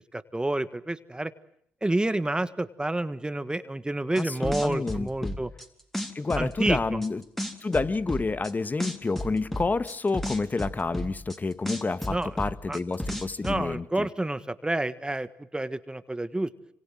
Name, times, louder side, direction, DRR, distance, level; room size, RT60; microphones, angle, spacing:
voice 1, 0.1-1.3 1.8-5.5 6.3-7.0 12.1-12.3 12.7-12.8 13.4-16.5, right 1 dB, 15° right, 13 dB, 1.5 m, -29 dB
voice 2, 4.2-5.4 6.1-7.2 7.6-14.1, left 3 dB, 30° left, 14 dB, 1.5 m, -29 dB
sound 1, 4.2-5.6 5.9-7.1 7.4-8.5 8.8-11.4 11.7-13.6, left 1 dB, 5° left, 3.8 m, -32 dB
26.0 x 26.0 x 7.7 m, 0.68 s
supercardioid pair, 55°, 6 cm